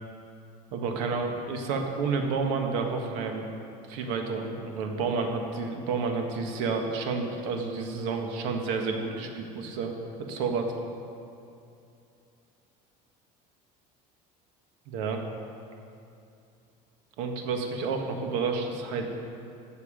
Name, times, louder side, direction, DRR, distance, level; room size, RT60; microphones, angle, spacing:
voice 1, 0.7-3.5 3.9-10.7 14.9-15.2 17.2-19.1, right 4 dB, 90° right, 3 dB, 1.5 m, -30 dB
14.5 x 7.3 x 5.1 m, 2.6 s
cardioid pair, 165°, 17 cm